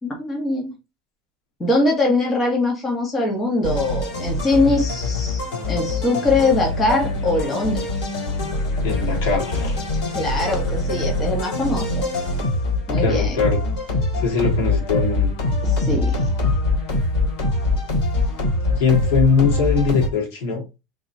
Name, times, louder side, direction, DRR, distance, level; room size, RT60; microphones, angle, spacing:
voice 1, 0.0-0.7 1.6-7.8 10.1-12.1 12.9-13.4 15.6-16.2, left 2 dB, 15° left, -1 dB, 1.2 m, -22 dB
sound 1, 3.6-20.1, left 2 dB, 60° left, 2.6 m, -23 dB
voice 2, 8.8-9.8 13.0-13.6 14.2-15.3 18.8-20.6, left 5 dB, 80° left, 0 dB, 2.1 m, -21 dB
3.8 x 2.9 x 4.0 m, 0.27 s
cardioid pair, 175°, 0 cm